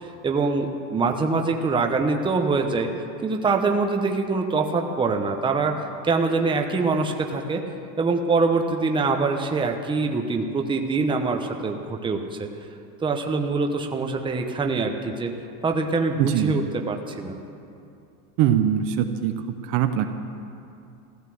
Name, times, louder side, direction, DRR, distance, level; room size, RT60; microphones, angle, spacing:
voice 1, 0.2-2.9 3.2-7.6 8.0-12.5 13.0-15.3 15.6-17.4, right 4 dB, 10° right, 4 dB, 0.9 m, -24 dB
voice 2, 16.2-16.6 18.4-20.0, right 10 dB, 40° right, 7 dB, 0.8 m, -22 dB
15.0 x 12.0 x 7.7 m, 2.6 s
supercardioid pair, 140°, 46 cm